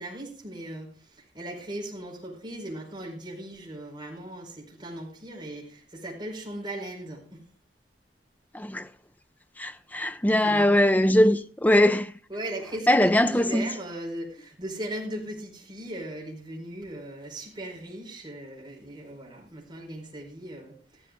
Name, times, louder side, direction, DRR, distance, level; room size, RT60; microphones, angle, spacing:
voice 1, 0.0-7.4 10.4-11.0 12.3-21.0, right 1 dB, 25° right, 4.8 m, -38 dB
voice 2, 8.5-8.9 9.6-12.1 12.9-13.7, left 1 dB, 10° left, 0.6 m, -21 dB
15.0 x 13.0 x 3.7 m
head